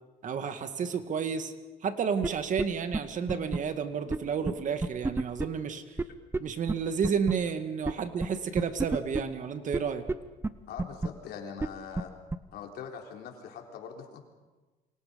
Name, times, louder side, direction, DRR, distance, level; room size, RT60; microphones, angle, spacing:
voice 1, 0.2-1.5 1.8-5.8 6.4-10.0, right 6 dB, 50° right, 8 dB, 2.0 m, -31 dB
sound 1, 2.2-2.3 2.6-2.7 2.9-3.0 3.3-3.6 4.1-4.2 4.5-4.6 4.8-5.5 6.0-6.1 6.3-6.4 6.7-6.8 7.0-7.3 7.9-8.0 8.2-8.3 8.6-9.2 9.7-9.8 10.1-10.2 10.4-10.5 10.8-11.1 11.6-11.7 12.0-12.1 12.3-12.4, right 3 dB, 15° right, 0.9 m, -28 dB
voice 2, 10.7-12.1 12.5-14.2, left 7 dB, 70° left, 2 dB, 4.0 m, -42 dB
28.5 x 24.5 x 5.3 m, 1.2 s
cardioid pair, 110°, 17 cm